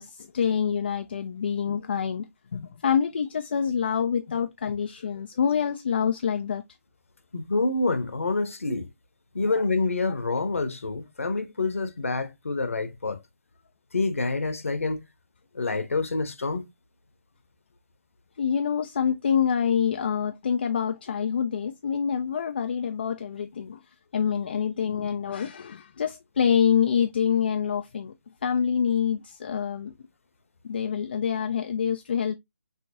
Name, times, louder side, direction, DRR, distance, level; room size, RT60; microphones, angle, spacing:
voice 1, 0.0-6.6 9.4-9.6 18.4-23.8 24.1-28.1 28.4-29.9 30.6-32.3, left 7 dB, 40° left, 0.4 m, -26 dB
voice 2, 7.3-8.9 9.3-13.2 13.9-15.0 15.5-16.6, left 3 dB, 60° left, 1.1 m, -27 dB
5.4 x 3.0 x 2.7 m
figure-of-eight pair, 145°, 8 cm